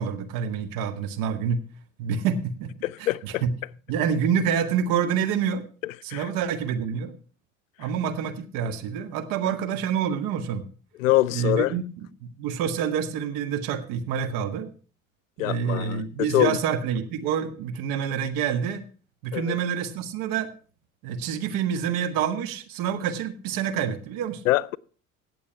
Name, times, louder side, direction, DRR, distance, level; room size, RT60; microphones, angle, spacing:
voice 1, 0.0-1.6 2.0-2.7 3.0-3.5 3.9-5.6 6.0-7.2 7.8-10.6 11.3-11.8 12.2-14.7 15.4-18.8 19.2-20.5 21.0-24.4, right 7 dB, 55° right, 1.6 m, -27 dB
voice 2, 2.8-3.4 5.8-6.3 11.0-11.7 15.4-16.6 19.3-19.6 24.5-24.8, left 15 dB, 70° left, 0.5 m, -24 dB
17.5 x 7.0 x 4.6 m
figure-of-eight pair, 60°, 41 cm